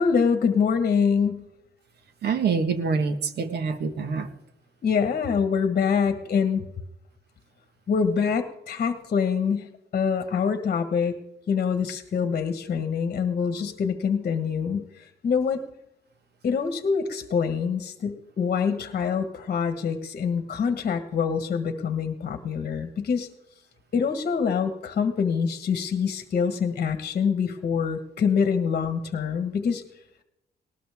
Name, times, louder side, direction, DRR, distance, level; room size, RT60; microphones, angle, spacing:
voice 1, 0.0-1.4 4.8-6.6 7.9-11.2 11.5-15.6 16.4-23.3 23.9-29.8, left 6 dB, 45° left, 1.5 m, -25 dB
voice 2, 2.2-4.3, right 5 dB, 70° right, 1.6 m, -26 dB
19.5 x 19.0 x 3.6 m
cardioid pair, 145°, 18 cm